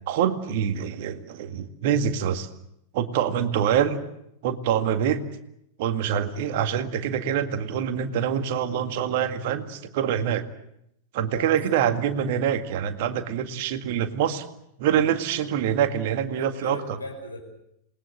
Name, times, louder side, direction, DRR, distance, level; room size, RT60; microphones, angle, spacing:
voice 1, 0.1-2.5 2.9-4.0 4.4-5.2 5.8-10.5 11.1-14.4 14.8-16.8, right 9 dB, 50° right, 9 dB, 1.9 m, -25 dB
voice 2, 11.3-11.8 16.4-17.4, left 1 dB, 80° left, 2 dB, 7.4 m, -38 dB
27.5 x 20.5 x 8.0 m, 0.79 s
figure-of-eight pair, 90°, 0 cm